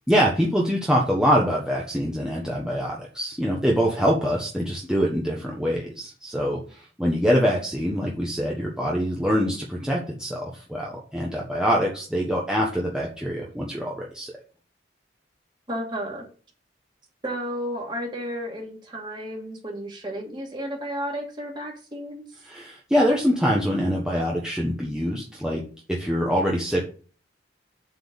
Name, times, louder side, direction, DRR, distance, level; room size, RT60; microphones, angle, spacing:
voice 1, 0.1-14.3 22.4-25.6 25.9-26.9, equal, 5° right, -3 dB, 1.3 m, -24 dB
voice 2, 15.7-16.2 17.2-22.2, equal, 25° right, 0 dB, 2.6 m, -32 dB
7.9 x 4.7 x 7.1 m, 0.39 s
head